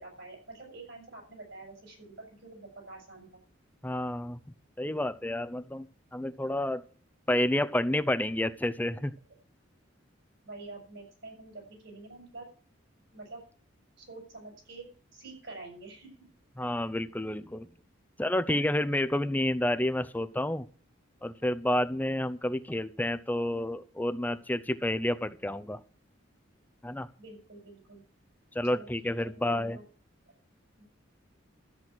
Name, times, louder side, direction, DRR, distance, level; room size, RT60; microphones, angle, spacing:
voice 1, 0.0-3.4 10.4-12.5 13.1-13.4 14.0-16.1 27.2-28.0 28.6-29.8 30.8-30.9, right 3 dB, 70° right, 1 dB, 5.8 m, -47 dB
voice 2, 3.8-4.4 4.8-5.9 6.1-6.8 7.3-9.1 16.6-17.7 18.2-20.6 21.2-25.8 26.8-27.1 28.5-29.8, left 1 dB, 10° left, 12 dB, 0.6 m, -29 dB
13.5 x 7.7 x 6.2 m, 0.42 s
head